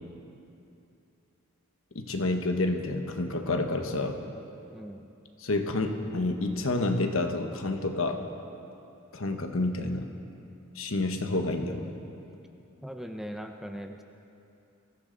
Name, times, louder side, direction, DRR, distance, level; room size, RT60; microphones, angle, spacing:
voice 1, 1.9-4.2 5.4-8.3 9.1-10.1 10.7-11.9, left 2 dB, 70° left, 5 dB, 1.2 m, -29 dB
voice 2, 4.7-5.0 12.8-14.0, equal, ahead, 4 dB, 0.6 m, -39 dB
23.0 x 15.5 x 4.0 m, 2.7 s
head